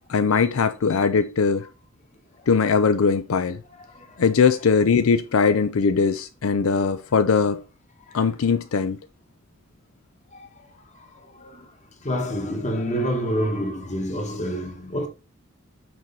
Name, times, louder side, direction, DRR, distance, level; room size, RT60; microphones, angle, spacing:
voice 1, 0.1-1.7 2.5-3.6 4.2-7.6 8.1-9.0, left 5 dB, 80° left, 0.5 m, -20 dB
voice 2, 12.0-15.1, equal, 35° left, 1.5 m, -27 dB
6.2 x 4.6 x 4.1 m
head